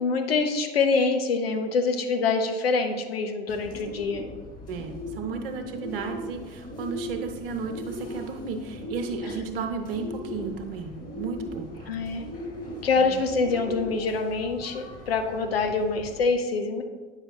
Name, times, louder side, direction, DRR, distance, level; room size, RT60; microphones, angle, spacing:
voice 1, 0.0-4.2 11.9-12.3 12.8-16.8, left 4 dB, 75° left, 6 dB, 0.6 m, -25 dB
Bird, 3.5-16.2, equal, 30° left, 1.8 m, -39 dB
voice 2, 4.7-11.9 13.0-13.1, right 4 dB, 65° right, 5 dB, 0.8 m, -34 dB
8.7 x 5.6 x 2.3 m, 1.3 s
figure-of-eight pair, 65°, 30 cm